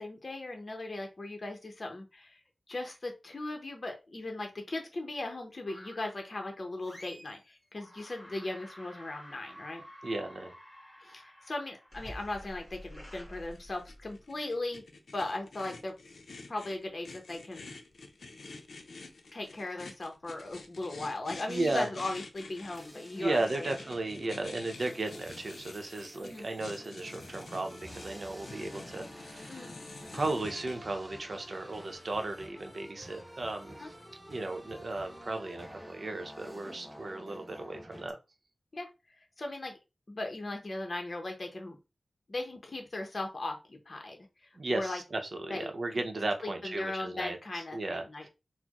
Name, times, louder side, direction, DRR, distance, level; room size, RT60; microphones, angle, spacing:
voice 1, 0.0-2.4 2.7-9.8 11.0-14.8 15.1-16.0 16.5-17.8 19.3-23.8 26.2-26.4 29.5-29.7 33.8-33.9 38.7-38.9 39.4-39.8 40.1-41.8 42.3-45.0 45.5-45.7 46.4-48.2, left 2 dB, 45° left, 3 dB, 0.8 m, -38 dB
sound 1, 5.7-6.2 6.8-7.4 7.7-14.2, equal, 15° left, 1.6 m, -50 dB
voice 2, 10.0-10.5 21.5-21.9 23.2-29.7 30.1-33.9 34.3-38.1 44.5-48.3, right 2 dB, 55° right, 4 dB, 0.7 m, -35 dB
sound 2, 13.5-30.8, left 3 dB, 85° left, 0.5 m, -48 dB
sound 3, 22.7-38.1, equal, 5° right, 0.7 m, -50 dB
4.2 x 2.1 x 2.9 m, 0.26 s
wide cardioid pair, 95°, 0 cm